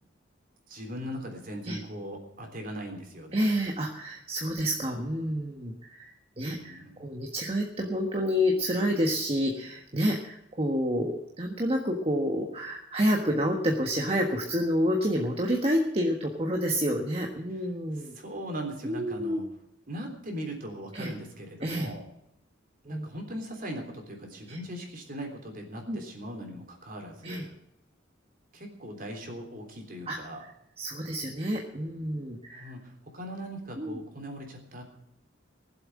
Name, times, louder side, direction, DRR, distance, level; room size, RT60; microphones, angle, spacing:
voice 1, 0.7-3.5 6.5-7.1 17.9-19.4 19.9-22.1 22.8-27.5 28.5-30.4 32.5-34.8, equal, 45° right, 2 dB, 3.5 m, -39 dB
voice 2, 3.3-18.1 18.8-19.4 20.9-21.1 21.6-21.9 22.8-23.1 24.5-24.6 25.9-26.0 27.2-27.4 30.1-30.2 30.8-32.7 33.8-34.0, equal, 30° right, 1 dB, 1.4 m, -29 dB
18.5 x 7.8 x 7.6 m, 0.78 s
head